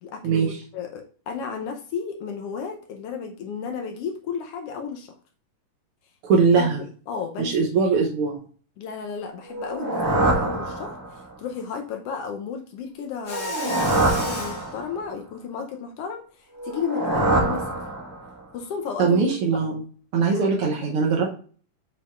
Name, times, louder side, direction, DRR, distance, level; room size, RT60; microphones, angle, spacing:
voice 1, 0.0-5.1 6.3-6.7 7.1-7.7 8.8-16.2 16.6-17.7 18.5-19.6 20.3-20.5 20.8-20.9, left 6 dB, 85° left, 4 dB, 1.3 m, -33 dB
voice 2, 6.2-6.8 7.4-8.4 19.0-19.8 20.1-21.3, right 5 dB, 80° right, 0 dB, 1.2 m, -21 dB
sound 1, 9.5-11.3 13.2-15.1 16.6-18.4, right 2 dB, 25° right, 0.4 m, -25 dB
Mechanisms, 13.2-14.7, equal, 55° left, 0.7 m, -32 dB
7.0 x 5.5 x 2.4 m, 0.42 s
omnidirectional pair, 3.6 m